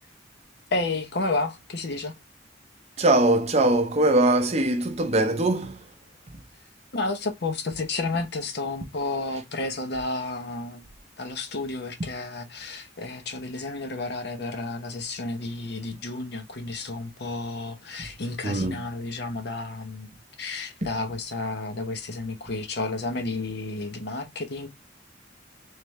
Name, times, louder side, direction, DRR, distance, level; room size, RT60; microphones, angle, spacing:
voice 1, 0.7-2.1 6.9-10.8 11.2-20.1 20.4-24.7, left 3 dB, 60° left, 0.8 m, -31 dB
voice 2, 3.0-5.8 18.4-18.9, right 2 dB, 35° right, 0.6 m, -21 dB
3.4 x 3.3 x 3.0 m
head